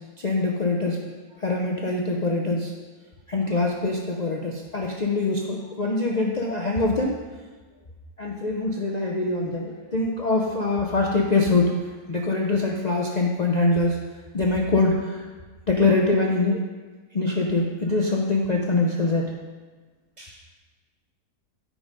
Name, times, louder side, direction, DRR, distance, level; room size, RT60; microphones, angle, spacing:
voice 1, 0.2-1.0 1.4-2.7 3.3-7.1 8.2-11.7 12.1-14.0 14.3-15.3 15.7-16.6 17.1-19.2, left 2 dB, 75° left, 0 dB, 0.3 m, -23 dB
voice 2, 3.4-3.5 5.8-5.9 9.8-9.9 10.6-10.9 20.2-20.3, equal, 25° right, -10 dB, 2.8 m, -48 dB
8.8 x 4.8 x 5.2 m, 1.3 s
omnidirectional pair, 1.7 m